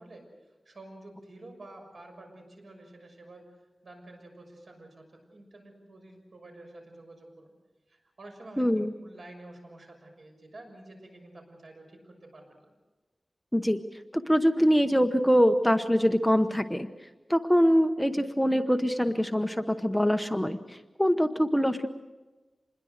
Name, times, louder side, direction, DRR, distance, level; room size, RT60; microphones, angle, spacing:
voice 1, 0.0-3.5 3.8-7.5 7.9-8.6 9.0-12.7, right 2 dB, 65° right, 3 dB, 6.4 m, -49 dB
voice 2, 8.6-8.9 13.5-13.8 14.1-16.9 17.3-21.9, equal, 5° left, 7 dB, 0.9 m, -24 dB
27.0 x 21.0 x 6.6 m, 1.2 s
wide cardioid pair, 95°, 0 cm